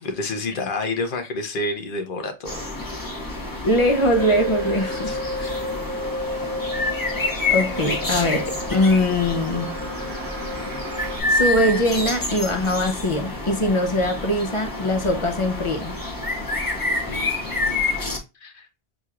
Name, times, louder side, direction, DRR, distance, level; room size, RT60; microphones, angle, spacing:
voice 1, 0.0-2.5 2.9-3.2 5.0-5.7 17.0-18.7, left 2 dB, 60° left, 1.0 m, -30 dB
sound 1, 2.5-18.2, left 3 dB, 20° left, 1.2 m, -28 dB
voice 2, 3.6-5.2 7.5-9.8 11.3-16.0, left 1 dB, 35° left, 0.7 m, -22 dB
sound 2, 4.2-11.2, left 1 dB, 90° right, 1.0 m, -32 dB
6.3 x 2.9 x 2.4 m
omnidirectional pair, 1.0 m